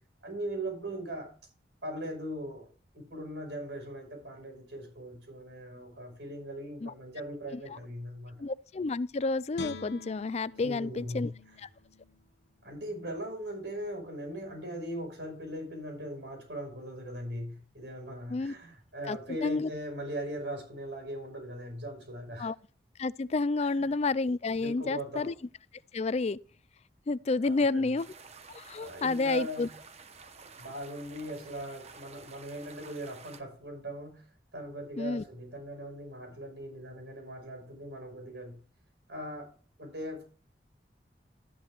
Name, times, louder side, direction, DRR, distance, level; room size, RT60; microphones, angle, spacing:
voice 1, 0.2-1.3 1.8-2.7 2.9-8.4 10.6-11.3 12.6-22.5 23.6-23.9 24.6-25.3 27.4-27.9 28.8-29.7 30.6-34.3 34.5-38.6 39.1-39.5 39.8-40.2, right 1 dB, 80° right, 5.3 m, -39 dB
voice 2, 8.4-11.3 11.6-11.7 18.3-18.5 19.1-19.7 22.4-22.6 23.0-25.3 25.9-26.4 27.1-28.1 28.5-29.7 35.0-35.2, left 3 dB, 40° left, 0.4 m, -30 dB
Guitar, 9.5-12.7 13.1-13.3, left 4 dB, 75° left, 1.0 m, -47 dB
sound 1, 28.0-33.4, right 4 dB, 40° right, 1.0 m, -51 dB
13.0 x 10.5 x 2.5 m
head